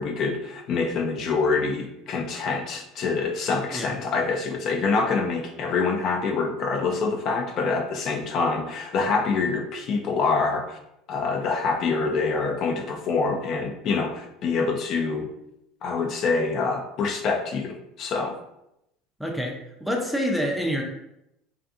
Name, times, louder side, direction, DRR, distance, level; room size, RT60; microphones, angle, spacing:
voice 1, 0.0-10.8 11.1-15.3 15.8-18.4, left 4 dB, 50° left, 2 dB, 0.4 m, -26 dB
voice 2, 19.2-20.8, equal, ahead, 0 dB, 0.5 m, -27 dB
2.6 x 2.5 x 2.5 m, 0.84 s
supercardioid pair, 105°, 0 cm